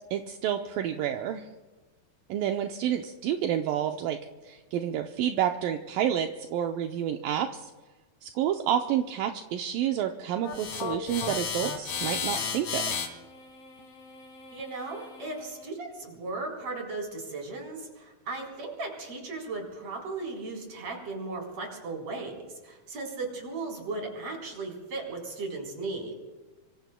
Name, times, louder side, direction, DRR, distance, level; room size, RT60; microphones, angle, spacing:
voice 1, 0.1-1.4 2.3-4.2 4.4-7.7 8.2-12.9, right 10 dB, 80° right, 4 dB, 2.3 m, -29 dB
sound 1, 10.4-15.6, left 6 dB, 50° left, 2.7 m, -35 dB
voice 2, 14.5-26.1, right 3 dB, 45° right, 0 dB, 4.8 m, -36 dB
25.5 x 25.0 x 2.2 m, 1.2 s
omnidirectional pair, 4.3 m